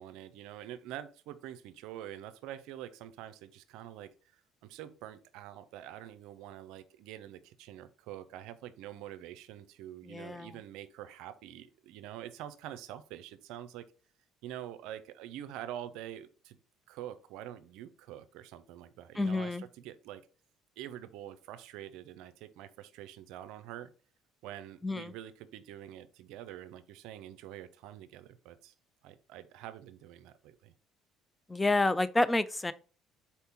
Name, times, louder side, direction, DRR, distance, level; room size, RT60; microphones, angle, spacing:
voice 1, 0.0-13.9 14.4-16.6 16.9-20.2 20.8-23.9 24.4-28.7 29.0-30.7, right 12 dB, 75° right, 0.4 m, -46 dB
voice 2, 10.1-10.5 19.2-19.6 24.8-25.1 31.5-32.7, left 2 dB, 15° left, 0.4 m, -29 dB
4.3 x 2.8 x 3.5 m
supercardioid pair, 75°, 0 cm